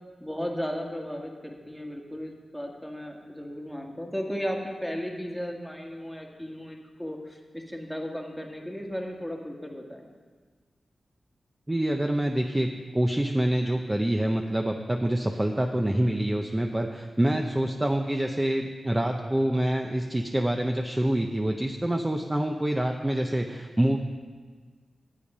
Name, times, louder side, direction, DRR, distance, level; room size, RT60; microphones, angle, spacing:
voice 1, 0.2-10.0, equal, ahead, 1 dB, 1.7 m, -35 dB
voice 2, 11.7-12.7 12.9-24.0, right 1 dB, 20° right, 3 dB, 0.7 m, -26 dB
9.9 x 8.5 x 5.5 m, 1.5 s
cardioid pair, 70°, 0 cm